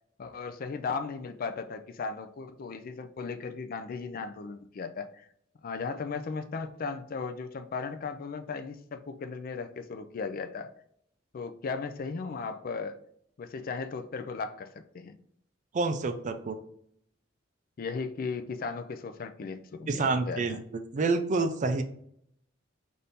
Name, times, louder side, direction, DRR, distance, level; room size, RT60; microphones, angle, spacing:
voice 1, 0.2-5.3 5.6-10.7 11.3-13.0 13.4-15.2 17.8-20.4, left 4 dB, 45° left, 8 dB, 0.4 m, -36 dB
voice 2, 15.7-16.6 19.9-20.6 20.9-21.8, right 3 dB, 40° right, 8 dB, 0.4 m, -28 dB
3.5 x 2.6 x 4.1 m, 0.70 s
head